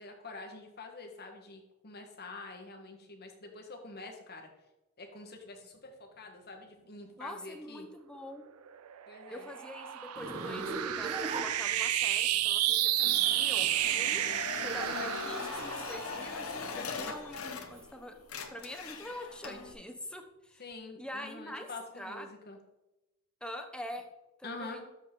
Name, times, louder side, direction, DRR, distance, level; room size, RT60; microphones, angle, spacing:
voice 1, 0.0-4.5 5.0-7.9 9.1-9.5 16.7-17.1 20.6-22.6 24.4-24.8, left 3 dB, 50° left, 3 dB, 1.5 m, -46 dB
voice 2, 7.2-8.4 9.3-9.9 10.2-14.2 14.6-20.6 21.0-21.7 22.0-22.3 23.4-24.0 24.4-24.8, left 1 dB, 5° left, 5 dB, 0.9 m, -44 dB
sound 1, 8.7-17.3, right 13 dB, 90° right, 0.4 m, -32 dB
Zipper (clothing), 10.1-12.2 13.3-15.0 15.4-17.8, right 3 dB, 30° right, 1.4 m, -41 dB
sound 2, 13.0-17.9 18.2-19.7, left 5 dB, 70° left, 0.9 m, -41 dB
12.5 x 5.8 x 3.8 m, 0.98 s
head